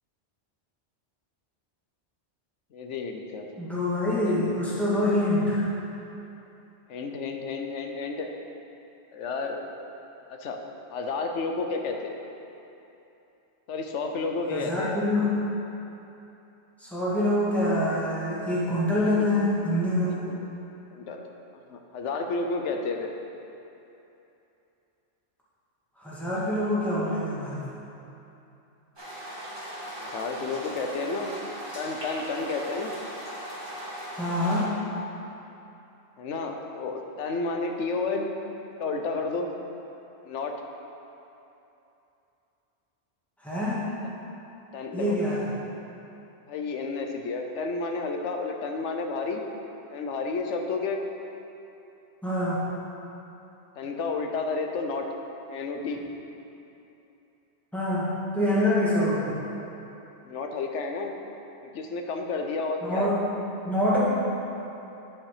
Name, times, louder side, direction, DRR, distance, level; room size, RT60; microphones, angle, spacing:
voice 1, 2.7-3.5 4.2-4.4 6.9-8.3 9.1-9.6 10.3-10.6 10.9-12.2 13.7-15.0 19.1-19.3 20.0-20.4 20.9-21.2 21.7-23.1 30.0-31.3 31.7-32.9 36.2-38.3 38.8-39.5 40.2-40.6 44.0-44.1 44.7-45.2 46.5-49.4 49.9-51.0 53.8-55.1 55.5-56.0 60.2-61.1 61.6-63.1, left 4 dB, 85° left, 3 dB, 1.1 m, -31 dB
voice 2, 3.6-5.6 14.5-15.3 16.8-20.2 26.0-27.6 34.2-34.7 43.4-43.8 44.9-45.4 52.2-52.6 57.7-58.1 58.3-59.4 62.8-63.2 63.7-64.0, left 1 dB, ahead, -9 dB, 1.9 m, -25 dB
sound 1, 29.0-34.6, right 1 dB, 20° right, 1.8 m, -38 dB
10.0 x 5.6 x 4.9 m, 2.9 s
omnidirectional pair, 1.2 m